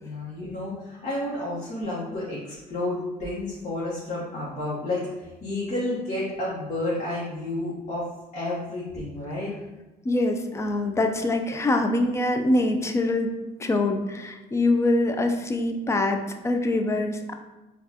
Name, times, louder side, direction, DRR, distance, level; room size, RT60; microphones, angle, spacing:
voice 1, 0.0-8.1 8.3-9.5, left 1 dB, 45° left, -7 dB, 1.0 m, -31 dB
voice 2, 10.0-13.3 13.6-17.3, left 2 dB, 15° left, 5 dB, 0.4 m, -24 dB
4.6 x 2.3 x 2.8 m, 1.0 s
cardioid pair, 110°, 17 cm